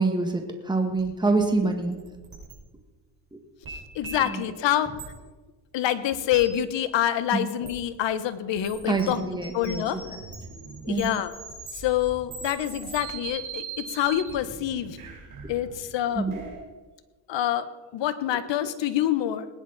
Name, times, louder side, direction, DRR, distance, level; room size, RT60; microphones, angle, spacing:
voice 1, 0.0-2.0 3.3-3.4 4.2-4.4 7.3-7.4 8.9-10.0 10.9-11.1 16.2-16.4, right 3 dB, 10° right, 3 dB, 1.9 m, -26 dB
sound 1, 1.0-1.1 1.4-2.6 3.6-4.4 5.0-5.1 6.3-6.5 7.6-7.8 8.6-16.6, right 5 dB, 45° right, 5.5 m, -40 dB
voice 2, 3.9-4.9 5.7-9.3 9.5-10.0 10.8-11.3 11.7-15.0 15.5-16.3 17.3-17.7 17.9-19.5, left 11 dB, 60° left, 12 dB, 1.2 m, -26 dB
19.5 x 10.0 x 4.2 m, 1.3 s
cardioid pair, 95°, 49 cm